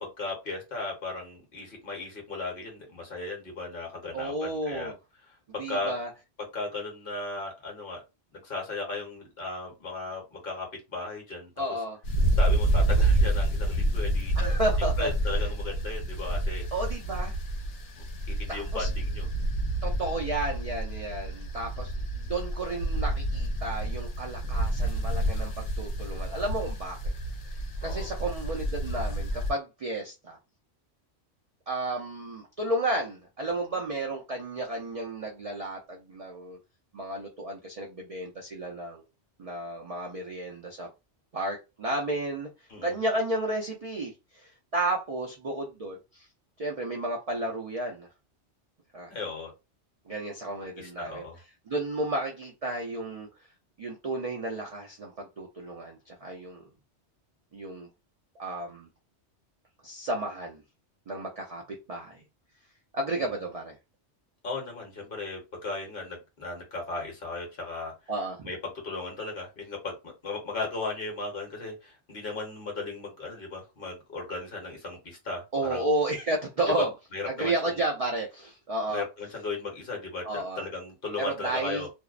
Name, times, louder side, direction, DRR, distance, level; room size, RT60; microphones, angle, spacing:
voice 1, 0.0-4.9 5.5-6.0 6.4-8.0 8.3-11.5 12.4-14.4 15.0-16.6 18.0-19.3 27.8-28.1 42.7-43.0 49.1-49.5 50.8-51.4 63.2-63.3 64.4-67.9 68.5-75.8 76.8-77.8 78.9-81.9, left 3 dB, 50° left, 1.0 m, -36 dB
voice 2, 4.1-5.0 5.6-6.1 11.6-12.0 14.4-15.1 16.7-17.3 18.5-18.9 19.8-27.1 27.4-30.4 31.7-36.6 36.9-39.0 39.4-40.9 41.3-42.5 42.8-46.3 46.6-48.1 48.9-49.1 50.1-51.2 51.7-53.3 53.8-56.6 57.5-57.9 58.4-58.9 59.8-60.6 61.1-62.2 62.9-63.7 68.1-68.5 75.5-76.9 77.3-79.0 80.2-80.6 81.2-81.9, right 2 dB, 65° right, 0.3 m, -32 dB
sound 1, 12.0-29.5, right 1 dB, 85° left, 0.9 m, -28 dB
2.6 x 2.0 x 2.4 m
omnidirectional pair, 1.2 m